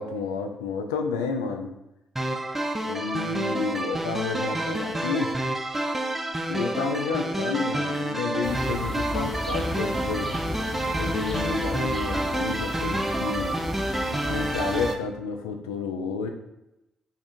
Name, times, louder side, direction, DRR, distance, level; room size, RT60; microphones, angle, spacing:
voice 1, 0.0-1.7 2.8-5.3 6.5-10.3 11.0-13.5 14.1-16.3, left 5 dB, 85° left, 5 dB, 0.3 m, -30 dB
sound 1, 2.2-14.9, right 1 dB, 10° right, 0.4 m, -29 dB
sound 2, 8.4-15.0, left 1 dB, 15° left, 0.8 m, -34 dB
3.6 x 2.4 x 4.2 m, 0.91 s
hypercardioid pair, 45°, 2 cm